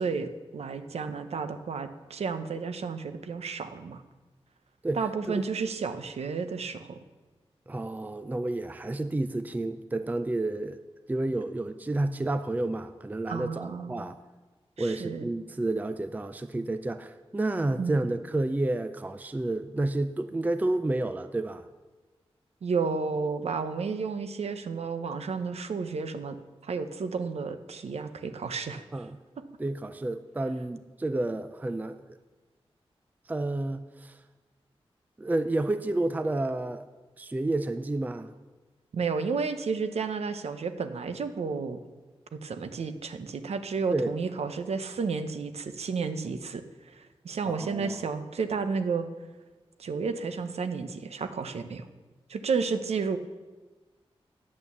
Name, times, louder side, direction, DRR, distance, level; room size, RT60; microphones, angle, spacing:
voice 1, 0.0-4.0 4.9-7.0 13.3-14.1 14.8-15.2 17.8-18.1 22.6-26.4 26.6-28.9 38.9-41.8 42.3-49.1 49.8-51.9 52.3-53.2, right 5 dB, 85° right, 9 dB, 0.7 m, -32 dB
voice 2, 4.8-5.4 7.7-10.8 11.1-14.2 14.8-21.6 28.9-29.2 29.6-32.2 33.3-34.2 35.2-36.8 37.2-38.3 43.9-44.1 47.5-48.0, right 2 dB, 15° right, 10 dB, 0.4 m, -30 dB
8.6 x 8.5 x 6.9 m, 1.3 s
wide cardioid pair, 90°, 10 cm